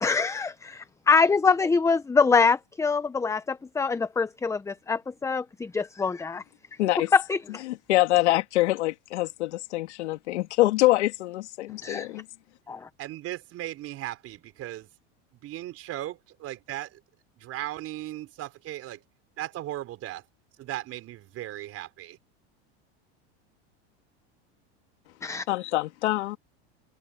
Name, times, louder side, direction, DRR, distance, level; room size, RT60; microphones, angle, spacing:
voice 1, 0.0-6.4 7.1-7.6 11.8-12.1 12.7-12.9 25.2-25.5, left 5 dB, 10° left, 0.7 m, -24 dB
voice 2, 6.8-7.1 7.7-12.3 25.5-26.4, left 17 dB, 85° left, 2.7 m, -25 dB
voice 3, 13.0-14.9 15.4-17.0 17.4-19.0 19.4-20.2 20.6-22.2, right 14 dB, 45° right, 4.6 m, -37 dB
supercardioid pair, 125°, 33 cm